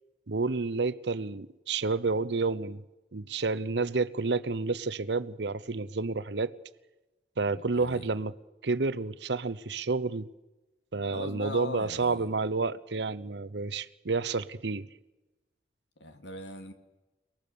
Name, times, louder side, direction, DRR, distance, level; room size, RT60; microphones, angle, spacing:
voice 1, 0.3-2.8 3.1-6.5 7.4-8.3 8.6-10.3 10.9-14.9, right 3 dB, 75° right, 0.8 m, -30 dB
voice 2, 7.5-8.1 11.1-12.3 16.0-16.7, left 2 dB, 80° left, 2.4 m, -41 dB
30.0 x 19.0 x 6.9 m
head